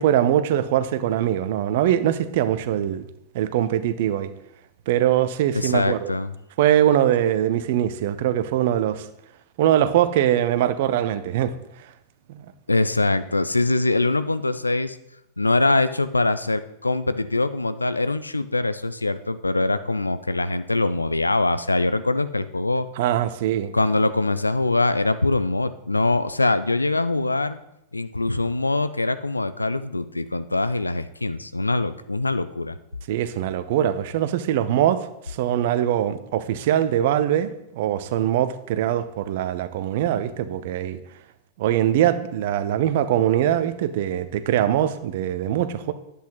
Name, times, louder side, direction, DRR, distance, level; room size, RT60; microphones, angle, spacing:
voice 1, 0.0-3.0 3.3-4.3 4.9-6.1 6.6-9.1 9.6-11.5 12.3-12.5 23.0-23.7 33.1-41.0 41.6-45.9, right 11 dB, 55° right, 13 dB, 0.7 m, -22 dB
voice 2, 5.5-6.3 12.7-15.0 15.4-22.9 23.7-27.6 27.9-32.8, left 2 dB, 90° left, 13 dB, 0.5 m, -23 dB
10.5 x 8.2 x 3.9 m, 0.83 s
figure-of-eight pair, 95°, 0 cm